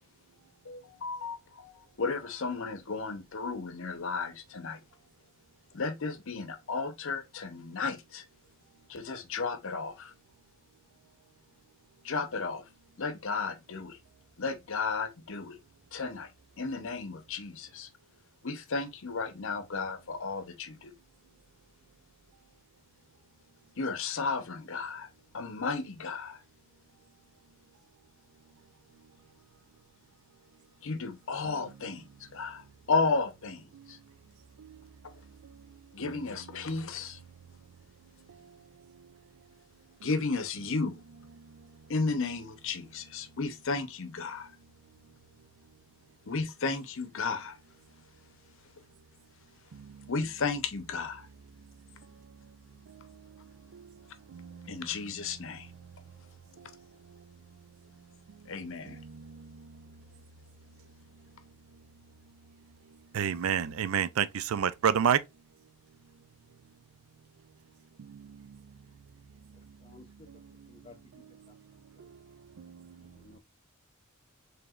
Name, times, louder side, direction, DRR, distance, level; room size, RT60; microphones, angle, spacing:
voice 1, 0.6-4.8 5.7-8.2 8.9-10.1 12.0-12.7 13.0-14.0 14.4-15.6 15.9-16.3 16.6-17.9 18.4-20.9 23.8-25.1 25.3-26.4 30.8-34.0 35.9-37.2 40.0-41.0 41.9-44.5 46.2-47.6 50.1-51.3 54.6-55.7 58.5-59.0, left 4 dB, 65° left, 0.7 m, -34 dB
voice 2, 63.1-65.2, right 8 dB, 70° right, 0.4 m, -27 dB
voice 3, 69.8-70.3 70.7-71.0 71.5-71.6 72.0-72.1 73.0-73.4, left 3 dB, 25° left, 0.5 m, -55 dB
4.9 x 3.3 x 2.4 m
head